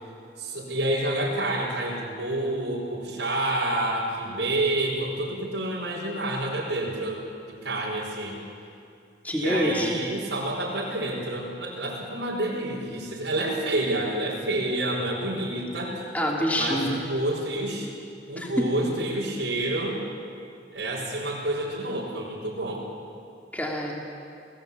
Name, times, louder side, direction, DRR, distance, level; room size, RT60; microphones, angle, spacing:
voice 1, 0.4-7.2 7.5-8.4 9.3-16.1 16.5-17.9 18.3-20.0 20.7-22.8, right 1 dB, 80° right, -5 dB, 5.2 m, -28 dB
voice 2, 9.2-9.9 16.1-17.0 18.4-18.7 23.5-23.9, equal, 10° left, -1 dB, 3.3 m, -26 dB
29.0 x 18.5 x 8.8 m, 2.6 s
head